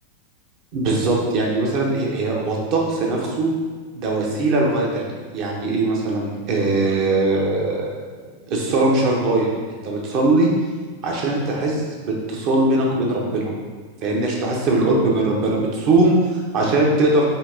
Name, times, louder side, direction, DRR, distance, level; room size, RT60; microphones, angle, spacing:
voice 1, 0.7-3.5 3.9-8.0 8.4-9.5 9.8-10.5 11.0-13.5 14.0-17.2, right 2 dB, 40° right, -1 dB, 0.9 m, -20 dB
5.5 x 2.7 x 2.7 m, 1.4 s
figure-of-eight pair, 90°, 0 cm